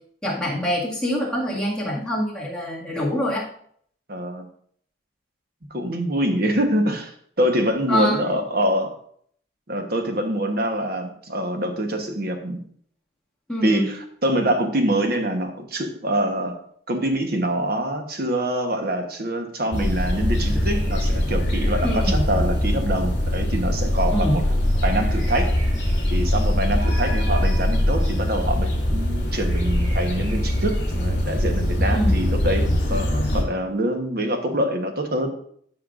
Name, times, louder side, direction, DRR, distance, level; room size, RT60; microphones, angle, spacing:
voice 1, 0.2-3.5 7.9-8.2 13.5-13.9 21.8-22.2 24.1-24.3 31.9-32.2, equal, 5° left, -6 dB, 2.0 m, -24 dB
voice 2, 4.1-4.5 5.7-7.1 7.4-8.9 9.7-12.6 13.6-16.6 16.9-24.4 24.8-25.5 26.1-35.3, right 1 dB, 50° right, 4 dB, 1.1 m, -25 dB
sound 1, 19.7-33.4, left 1 dB, 55° left, 2.7 m, -22 dB
13.0 x 5.8 x 2.5 m, 0.62 s
head